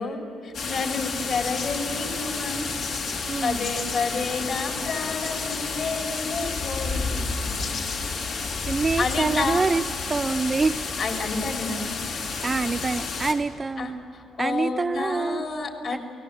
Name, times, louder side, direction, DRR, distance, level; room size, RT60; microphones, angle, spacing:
voice 1, 0.0-2.7 3.4-7.5 9.0-9.7 11.0-11.9 13.8-16.0, left 4 dB, 60° left, 2 dB, 3.9 m, -30 dB
sound 1, 0.5-13.3, left 4 dB, 80° left, 3.3 m, -30 dB
voice 2, 3.3-3.6 8.6-9.8 10.1-10.8 12.4-14.0 14.4-15.5 15.9-16.0, right 4 dB, 30° right, 9 dB, 0.6 m, -25 dB
29.0 x 19.0 x 7.9 m, 2.9 s
cardioid pair, 90°, 0 cm